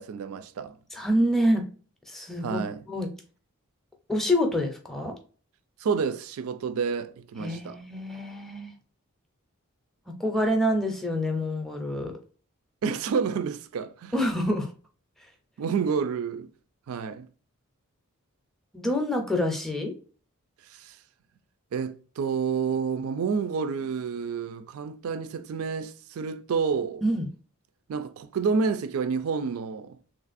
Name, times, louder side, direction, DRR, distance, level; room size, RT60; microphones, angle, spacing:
voice 1, 0.0-0.8 2.4-2.8 5.8-7.8 12.8-14.1 15.6-16.5 16.9-17.3 20.6-21.0 21.7-27.0 27.9-30.0, right 5 dB, 75° right, 0.4 m, -29 dB
voice 2, 0.9-1.6 2.1-2.6 2.9-3.1 4.1-5.1 7.4-8.7 10.2-12.1 14.1-14.7 18.7-19.9 27.0-27.3, equal, ahead, 0.5 m, -26 dB
3.2 x 2.4 x 2.4 m
head